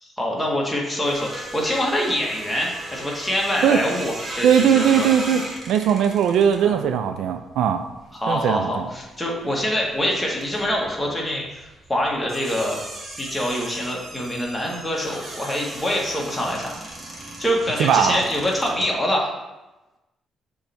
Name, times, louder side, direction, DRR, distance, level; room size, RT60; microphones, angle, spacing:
voice 1, 0.0-5.1 6.6-6.8 8.1-12.8 13.2-16.8 17.4-19.3, equal, 10° left, -3 dB, 1.7 m, -25 dB
sound 1, 1.0-9.1 9.4-18.9, right 1 dB, 30° right, 1.6 m, -37 dB
voice 2, 4.4-5.4 5.7-7.8 8.3-8.9 17.8-18.2, right 8 dB, 80° right, 8 dB, 0.4 m, -19 dB
7.0 x 3.4 x 4.3 m, 1.0 s
cardioid pair, 90°, 0 cm